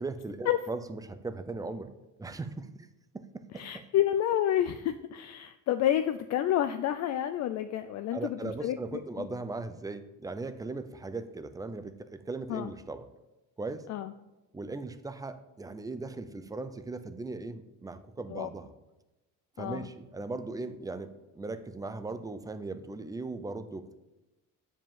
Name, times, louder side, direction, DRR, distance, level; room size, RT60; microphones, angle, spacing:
voice 1, 0.0-1.9 2.2-2.9 3.1-3.9 8.1-13.1 13.6-13.9 14.5-18.7 19.6-23.9, right 3 dB, 10° right, 11 dB, 0.4 m, -38 dB
voice 2, 3.5-9.0 12.5-12.7 13.9-14.1 18.3-18.5 19.6-19.9, left 11 dB, 55° left, 10 dB, 0.4 m, -29 dB
7.6 x 5.1 x 7.1 m, 1.0 s
cardioid pair, 145°, 33 cm